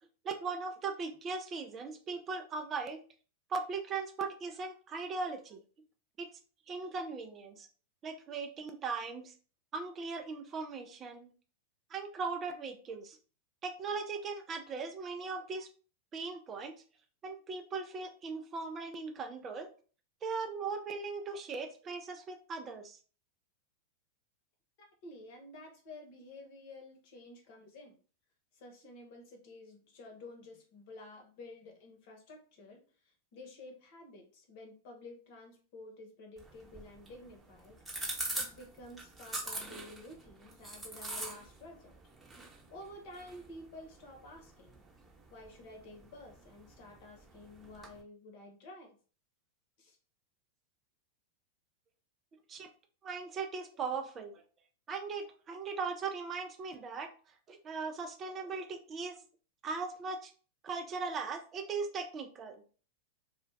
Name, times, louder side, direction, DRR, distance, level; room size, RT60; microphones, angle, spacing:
voice 1, 0.2-3.0 3.5-5.6 6.2-6.3 6.7-7.7 8.0-9.3 9.7-11.3 11.9-13.2 13.6-15.7 16.1-16.7 17.2-19.7 20.2-23.0 52.5-52.7 53.0-54.4 54.9-57.1 57.5-59.2 59.6-60.3 60.6-62.6, right 4 dB, 30° right, 6 dB, 0.4 m, -39 dB
voice 2, 24.8-28.0 28.5-41.9 42.7-44.8 45.3-49.0 49.8-50.0, left 2 dB, 55° left, 2 dB, 0.9 m, -51 dB
sound 1, 36.4-48.0, right 2 dB, 15° right, 0.9 m, -45 dB
2.2 x 2.2 x 3.2 m, 0.39 s
hypercardioid pair, 95°, 0 cm